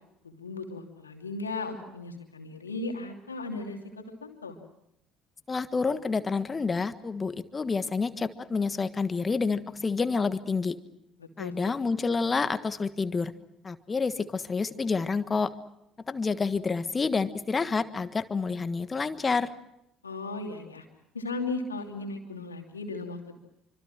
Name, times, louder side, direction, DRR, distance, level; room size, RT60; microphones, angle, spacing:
voice 1, 0.2-4.6 11.2-11.7 20.0-20.8 21.1-23.4, left 3 dB, 85° left, 3 dB, 2.8 m, -36 dB
voice 2, 5.5-10.8 11.4-13.3 13.6-15.5 16.1-19.5, left 4 dB, 25° left, 12 dB, 1.5 m, -28 dB
27.0 x 25.0 x 6.2 m, 0.81 s
figure-of-eight pair, 55°, 0 cm